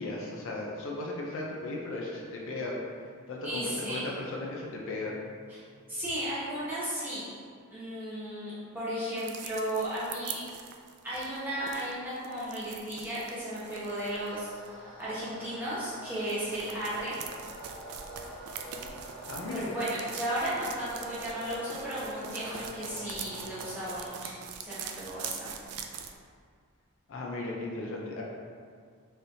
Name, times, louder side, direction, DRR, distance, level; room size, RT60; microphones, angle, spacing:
voice 1, 0.0-2.8 3.3-5.2 19.2-19.8 27.1-28.2, left 2 dB, 60° left, -2 dB, 0.5 m, -36 dB
voice 2, 3.4-4.1 5.5-5.6 5.9-7.3 7.7-10.4 11.0-14.5 15.0-17.2 19.5-24.3 24.6-25.6, right 1 dB, 10° right, -11 dB, 1.1 m, -35 dB
sound 1, 9.2-14.7 16.1-26.1, right 7 dB, 80° right, 0.3 m, -43 dB
sound 2, 13.6-24.1, equal, 10° left, 1.0 m, -46 dB
4.1 x 3.3 x 2.7 m, 2.1 s
head